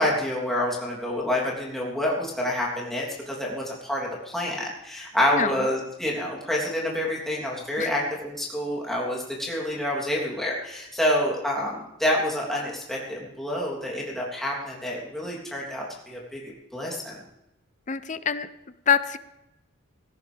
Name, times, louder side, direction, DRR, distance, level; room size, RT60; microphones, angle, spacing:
voice 1, 0.0-17.2, left 1 dB, ahead, -4 dB, 3.3 m, -28 dB
voice 2, 17.9-18.5 18.9-19.2, left 7 dB, 35° left, 13 dB, 0.6 m, -24 dB
17.5 x 16.0 x 3.5 m, 0.93 s
head